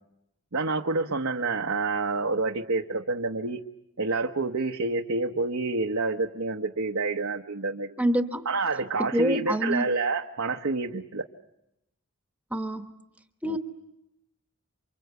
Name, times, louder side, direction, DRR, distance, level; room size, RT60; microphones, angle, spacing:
voice 1, 0.5-3.6 4.0-7.9 8.4-11.2 13.4-13.6, right 3 dB, 75° right, 3 dB, 1.1 m, -28 dB
voice 2, 8.0-8.4 9.0-9.8 12.5-12.9 13.4-13.6, equal, 5° right, 8 dB, 1.1 m, -26 dB
28.5 x 25.0 x 8.2 m, 0.85 s
head